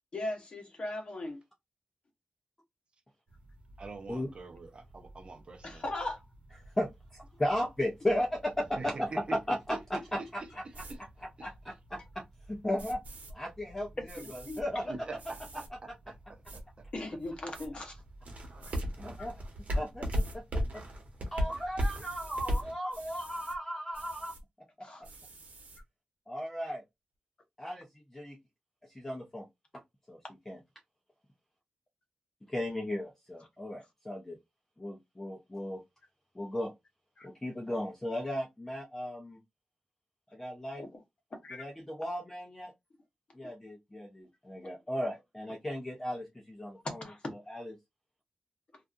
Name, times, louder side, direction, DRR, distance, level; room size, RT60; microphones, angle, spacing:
voice 1, 0.1-1.4 5.6-6.2 11.4-11.5 14.2-14.8 16.9-18.0 24.8-25.1 37.2-37.3 40.8-40.9 41.3-41.6 46.8-47.3, left 2 dB, 45° left, 0.8 m, -38 dB
sound 1, 3.3-22.8, equal, 60° right, 0.9 m, -40 dB
voice 2, 3.8-5.9 8.8-9.4 9.9-11.0 11.7-11.8 14.9-15.6 16.1-16.2 16.5-16.8, right 3 dB, 40° right, 0.6 m, -44 dB
voice 3, 6.8-9.1 9.5-10.2 11.4-12.2 12.5-13.0 13.3-14.9 19.0-19.4 19.7-20.1 20.3-20.8 21.3-24.3 24.8-24.9 26.3-26.8 27.6-28.4 28.8-29.5 29.7-29.8 30.1-30.2 30.5-30.6 32.5-34.4 34.8-35.8 36.3-36.7 37.2-39.4 40.3-40.9 41.5-42.7 43.3-47.0 47.5-47.7, left 1 dB, 15° left, 0.5 m, -36 dB
sound 2, 10.7-11.0 12.8-13.3 14.1-14.6 15.2-15.7 16.4-16.6 17.2-17.7 18.6-18.8 20.1-20.4 21.8-22.6 22.9-23.6 23.9-24.4 25.0-25.8, right 2 dB, 85° right, 0.8 m, -49 dB
2.7 x 2.3 x 2.4 m
wide cardioid pair, 150°, 3 cm